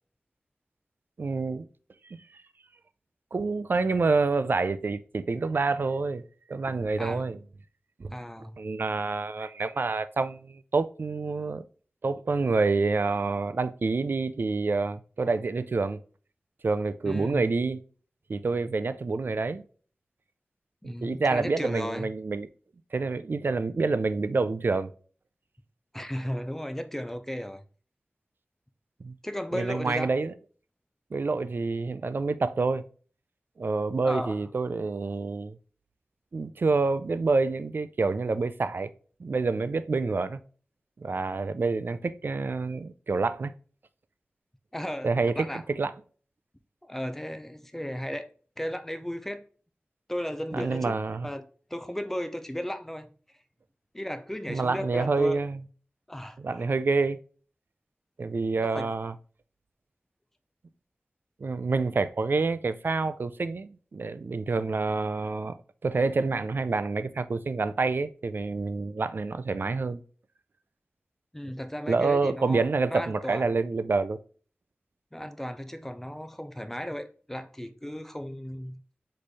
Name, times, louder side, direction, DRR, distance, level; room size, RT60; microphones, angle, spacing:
voice 1, 1.2-1.7 2.1-2.2 3.3-6.2 6.5-7.4 8.0-8.1 8.6-11.6 12.0-16.0 16.6-17.8 18.3-19.6 20.8-22.5 22.9-24.9 29.0-29.1 29.5-30.3 31.1-32.8 33.6-35.6 36.3-38.9 39.2-40.4 41.0-43.5 45.0-45.3 45.7-45.9 50.5-51.3 54.5-55.6 56.4-57.2 58.2-59.1 61.4-65.6 65.8-70.0 71.9-74.2, right 3 dB, 60° right, 0.4 m, -27 dB
voice 2, 8.1-8.6 17.0-17.4 20.8-22.1 25.9-27.6 29.2-30.1 34.0-34.4 44.7-45.6 46.8-48.3 48.6-49.4 50.1-51.0 51.2-53.1 53.9-55.4 56.1-56.7 58.6-58.9 71.3-73.5 75.1-78.8, equal, 10° left, 0.5 m, -35 dB
4.2 x 3.2 x 3.4 m
wide cardioid pair, 60°, 4 cm